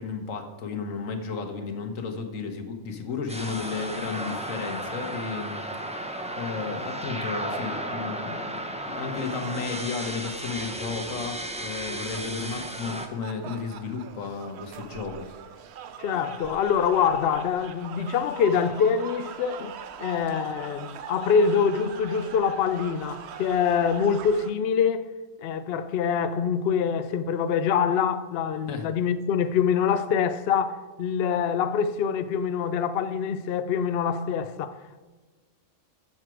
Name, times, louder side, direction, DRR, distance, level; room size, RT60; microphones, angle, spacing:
voice 1, 0.0-5.9 6.4-8.6 8.9-15.3 28.7-28.9, left 5 dB, 85° left, 1.4 m, -33 dB
sound 1, 3.3-13.1, right 1 dB, 10° right, 0.4 m, -34 dB
sound 2, 9.0-24.5, right 8 dB, 65° right, 0.8 m, -43 dB
voice 2, 16.0-25.0 25.4-35.0, left 7 dB, 65° left, 0.7 m, -25 dB
7.6 x 7.3 x 4.9 m
omnidirectional pair, 1.3 m